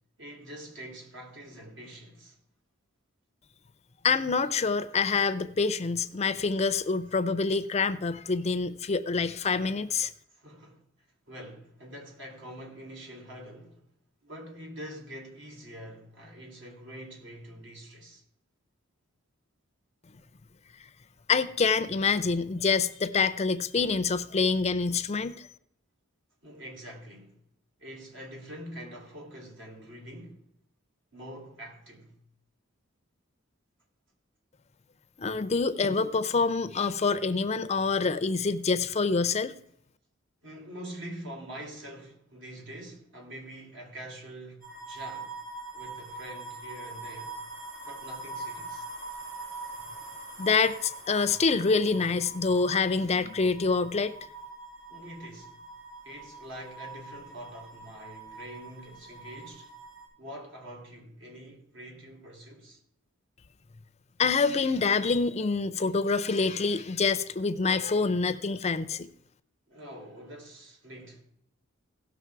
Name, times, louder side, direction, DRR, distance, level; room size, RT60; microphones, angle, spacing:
voice 1, 0.2-2.4 10.3-10.8 11.3-13.9 14.2-18.2 26.4-27.4 27.8-30.5 31.1-32.2 40.4-45.3 45.7-47.4 47.8-48.9 54.9-55.5 56.0-59.7 60.2-62.8 69.7-71.2, equal, 65° right, 3.2 m, -45 dB
voice 2, 4.0-10.1 21.3-25.5 35.2-39.6 50.4-54.1 64.2-69.1, left 4 dB, 35° left, 0.5 m, -26 dB
sound 1, 44.6-60.1, right 3 dB, 50° right, 5.5 m, -43 dB
17.0 x 6.3 x 4.7 m
head